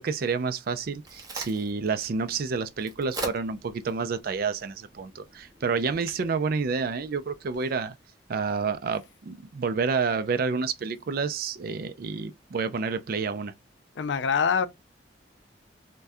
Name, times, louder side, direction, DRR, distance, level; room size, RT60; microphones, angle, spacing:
voice 1, 0.0-8.0 8.3-13.5, right 5 dB, 50° right, 0.4 m, -29 dB
Crack, 0.6-7.6, right 2 dB, 20° right, 0.8 m, -43 dB
voice 2, 14.0-14.7, left 6 dB, 70° left, 0.4 m, -24 dB
3.4 x 2.2 x 2.6 m
head